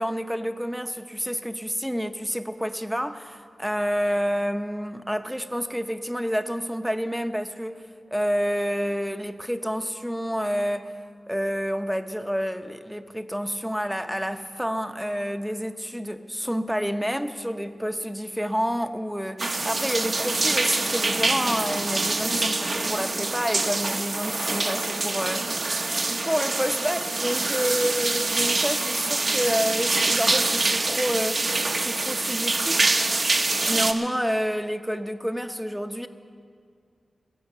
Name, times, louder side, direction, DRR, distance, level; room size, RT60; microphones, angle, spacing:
voice 1, 0.0-7.8 8.1-10.9 11.3-25.8 26.2-32.8 33.7-36.1, equal, ahead, 8 dB, 0.7 m, -29 dB
sound 1, 19.4-33.9, right 3 dB, 50° right, 1.0 m, -25 dB
21.0 x 8.8 x 6.7 m, 2.2 s
wide cardioid pair, 85°, 0 cm